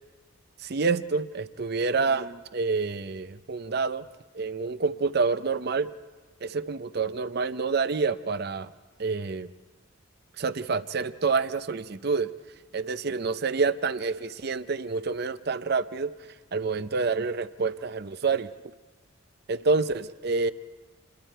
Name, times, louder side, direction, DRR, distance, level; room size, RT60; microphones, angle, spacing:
voice 1, 0.6-4.1 4.3-5.9 6.4-8.7 9.0-9.5 10.4-12.3 12.7-16.1 16.5-18.5 19.5-20.5, right 4 dB, 50° right, 13 dB, 0.6 m, -28 dB
28.0 x 21.5 x 4.5 m, 1.3 s
head